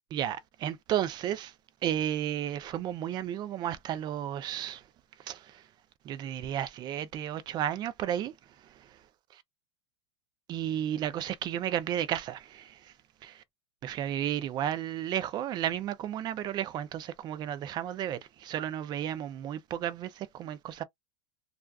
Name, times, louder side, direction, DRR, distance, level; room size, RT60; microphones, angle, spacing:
voice 1, 0.1-1.5 1.8-4.8 5.3-5.6 6.0-8.3 10.5-12.9 13.2-13.4 13.8-20.8, right 10 dB, 25° right, 0.4 m, -33 dB
2.3 x 2.3 x 2.3 m
supercardioid pair, 130°, 16 cm